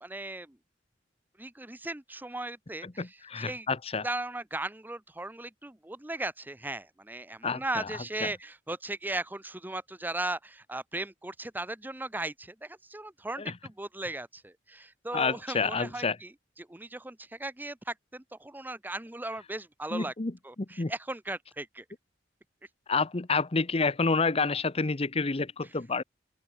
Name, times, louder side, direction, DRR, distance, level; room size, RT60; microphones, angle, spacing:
voice 1, 0.0-0.6 1.4-3.7 4.0-16.3 16.6-20.1 20.4-21.8, right 2 dB, 10° right, 0.8 m, -37 dB
voice 2, 2.8-4.1 7.4-7.9 8.2-8.3 13.4-13.5 15.1-16.2 19.9-20.3 20.8-20.9 22.9-26.0, left 4 dB, 35° left, 0.8 m, -29 dB
open air
head